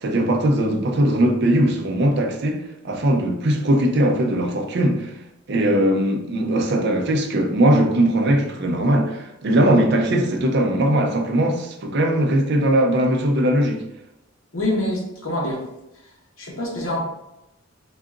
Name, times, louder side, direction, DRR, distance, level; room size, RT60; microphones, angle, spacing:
voice 1, 0.0-5.1 5.5-13.9, right 1 dB, 50° right, 0.5 m, -20 dB
voice 2, 14.5-15.6 16.4-17.0, left 1 dB, 65° left, 1.0 m, -25 dB
3.7 x 2.4 x 3.6 m
head